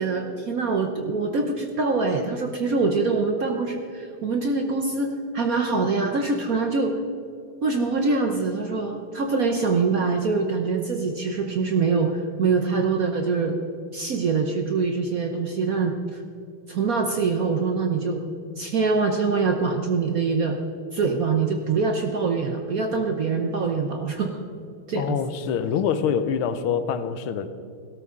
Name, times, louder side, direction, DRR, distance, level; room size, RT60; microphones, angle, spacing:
voice 1, 0.0-6.9 7.6-13.5 13.9-16.2 16.7-18.2 18.6-20.6 20.9-24.4 24.9-25.2, right 4 dB, 60° right, 4 dB, 1.0 m, -24 dB
voice 2, 25.0-27.5, left 7 dB, 80° left, 11 dB, 1.6 m, -25 dB
17.0 x 12.5 x 3.7 m, 2.5 s
omnidirectional pair, 2.4 m